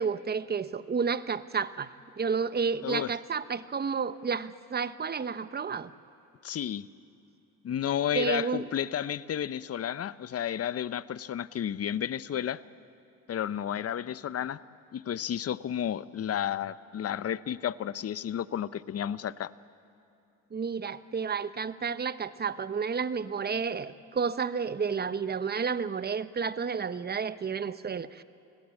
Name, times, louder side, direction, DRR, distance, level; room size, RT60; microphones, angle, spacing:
voice 1, 0.0-5.9 8.1-8.7 20.5-28.2, right 5 dB, 30° right, 14 dB, 1.0 m, -31 dB
voice 2, 6.4-6.9 7.6-12.6 13.3-14.6 14.9-19.5, left 9 dB, 45° left, 16 dB, 0.8 m, -32 dB
30.0 x 17.0 x 8.4 m, 2.9 s
supercardioid pair, 70°, 35 cm